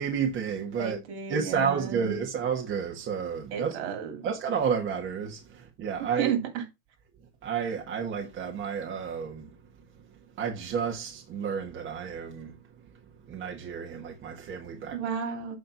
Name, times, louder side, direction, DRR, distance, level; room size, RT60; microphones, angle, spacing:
voice 1, 0.0-1.0 1.3-3.8 4.2-6.3 7.4-9.5 10.4-12.5 13.3-15.0, right 7 dB, 35° right, 1.6 m, -31 dB
voice 2, 0.8-2.2 3.5-4.3 6.2-6.6 14.9-15.6, right 7 dB, 65° right, 2.6 m, -33 dB
7.7 x 4.5 x 4.0 m
supercardioid pair, 155°, 35 cm